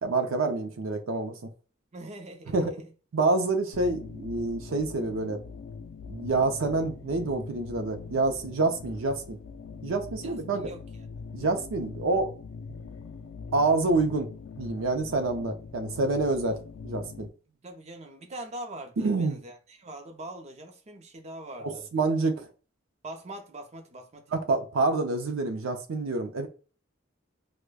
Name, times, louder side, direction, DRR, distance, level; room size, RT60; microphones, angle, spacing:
voice 1, 0.0-1.4 2.5-2.7 3.1-5.4 6.1-9.4 9.8-10.7 11.3-12.3 13.5-14.3 14.6-17.3 19.0-19.4 21.6-22.5 24.3-26.5, right 3 dB, 85° right, 0.5 m, -27 dB
voice 2, 1.9-2.9 10.2-10.8 17.5-21.9 23.0-24.3, right 1 dB, 35° right, 0.6 m, -43 dB
sound 1, 3.7-17.3, left 5 dB, 70° left, 0.3 m, -42 dB
4.7 x 2.1 x 2.2 m
head